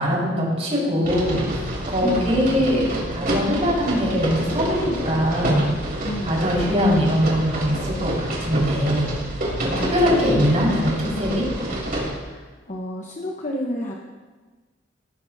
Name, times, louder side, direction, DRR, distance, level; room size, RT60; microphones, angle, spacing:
voice 1, 0.0-2.9 3.1-5.8 6.2-9.2 9.6-11.5, equal, 35° right, -4 dB, 4.9 m, -22 dB
sound 1, 1.0-12.1, right 1 dB, 50° right, 3.5 m, -27 dB
voice 2, 2.0-2.5 6.0-6.6 9.7-10.4 12.2-13.9, equal, 40° left, -1 dB, 1.1 m, -31 dB
17.5 x 13.0 x 2.8 m, 1.3 s
head